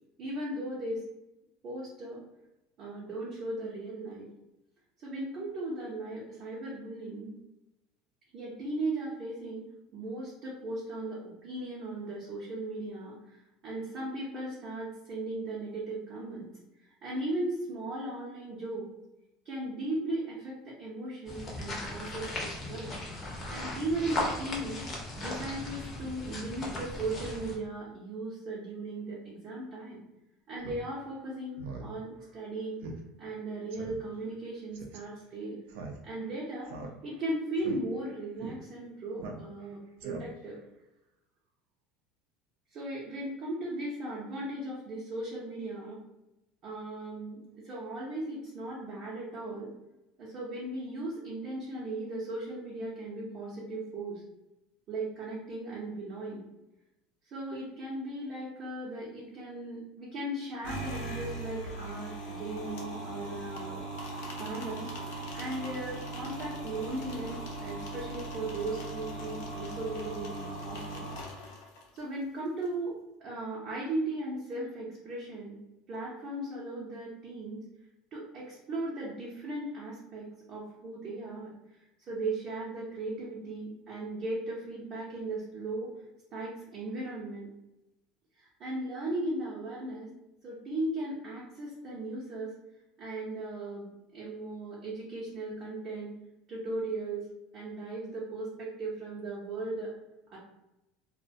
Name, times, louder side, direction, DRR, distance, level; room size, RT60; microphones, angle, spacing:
voice 1, 0.2-1.0 1.6-2.2 2.8-4.3 5.0-7.4 8.3-9.7 9.9-16.5 17.0-18.9 19.4-22.9 23.5-24.8 25.2-30.0 30.5-32.8 33.2-35.6 36.0-36.7 37.0-40.6 42.7-46.0 46.6-49.7 50.2-54.2 54.9-56.4 57.2-63.9 64.4-64.9 65.3-71.1 71.9-75.6 75.9-77.6 78.1-81.5 82.1-85.9 86.3-87.5 88.4-90.1 90.4-92.5 93.0-96.1 96.5-97.3 97.5-99.9 100.3-100.4, right 2 dB, 35° right, -6 dB, 0.5 m, -37 dB
sound 1, 21.3-27.6, left 1 dB, 25° left, 0.5 m, -37 dB
Speech synthesizer, 30.6-30.8 31.2-31.3 31.6-31.9 32.2-32.3 32.8-33.0 33.3-33.4 33.7-34.0 34.7-35.0 35.7-36.3 36.6-37.2 37.6-37.8 38.4-38.5 39.2-39.7 40.0-40.5, right 4 dB, 85° right, 0.4 m, -41 dB
sound 2, 60.6-72.0, right 2 dB, 80° left, 0.6 m, -39 dB
2.3 x 2.1 x 2.6 m, 0.93 s
cardioid pair, 170°, 0 cm